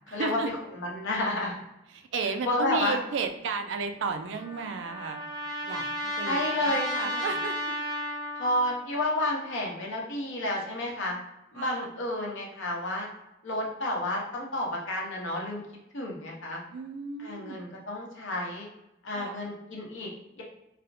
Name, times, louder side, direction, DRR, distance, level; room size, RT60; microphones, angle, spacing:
voice 1, 0.1-0.5 1.9-5.2 5.6-5.9 6.2-7.7 11.6-11.9 16.7-17.7 19.1-19.5, right 4 dB, 75° right, 6 dB, 0.4 m, -34 dB
voice 2, 0.7-1.5 2.4-3.0 6.2-7.3 8.4-11.2 11.5-13.1 13.4-15.6 15.9-16.6 17.2-18.7 19.0-20.1 20.4-20.5, left 1 dB, 90° left, -2 dB, 0.9 m, -30 dB
Trumpet, 4.0-8.8, equal, 20° right, 0.7 m, -33 dB
4.1 x 2.1 x 2.7 m, 0.89 s
head